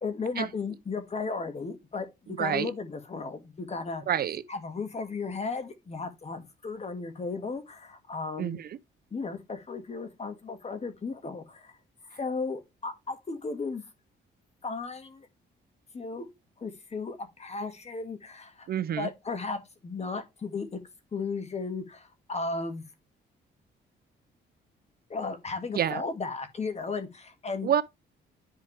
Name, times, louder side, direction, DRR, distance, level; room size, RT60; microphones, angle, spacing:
voice 1, 0.0-4.0 4.5-8.6 9.1-11.8 12.1-13.9 14.6-15.3 15.9-16.3 16.6-18.7 19.0-20.8 21.1-22.8 25.1-27.7, left 4 dB, 35° left, 1.8 m, -35 dB
voice 2, 2.4-2.7 4.1-4.4 8.4-8.7 18.7-19.1 25.8-26.0 27.6-27.8, right 9 dB, 50° right, 0.5 m, -27 dB
10.0 x 4.7 x 3.3 m
cardioid pair, 90°, 20 cm